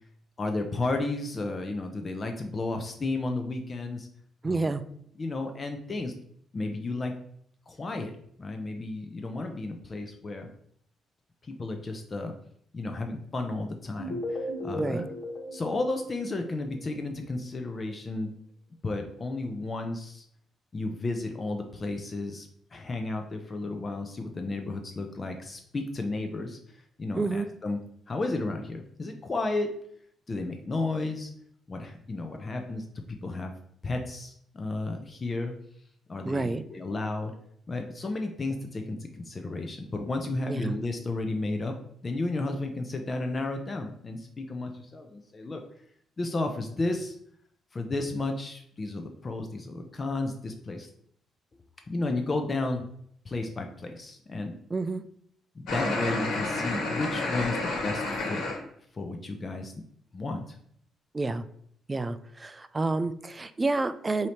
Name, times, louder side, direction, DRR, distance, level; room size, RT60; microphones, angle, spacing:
voice 1, 0.4-4.1 4.5-4.7 5.2-6.1 6.5-7.1 7.7-8.1 8.4-10.5 11.4-12.3 12.7-15.0 15.5-18.3 18.8-20.3 20.7-27.8 28.1-29.7 30.3-31.3 31.7-33.5 33.8-35.5 36.1-37.3 37.7-41.8 42.0-45.6 46.2-47.2 47.7-50.9 51.9-52.8 53.2-54.5 55.5-58.4 58.9-59.7 60.1-60.6, left 2 dB, 35° left, 4 dB, 0.5 m, -33 dB
voice 2, 4.4-4.8 14.7-15.0 27.1-27.5 36.2-36.6 40.5-40.7 54.7-55.0 61.1-61.4 61.9-64.3, right 3 dB, 25° right, 13 dB, 0.3 m, -29 dB
sound 1, 14.0-16.9, left 1 dB, 55° left, 1.3 m, -36 dB
sound 2, 55.7-58.6, left 2 dB, 75° left, 1.3 m, -30 dB
4.7 x 2.8 x 2.9 m, 0.66 s
cardioid pair, 90°, 0 cm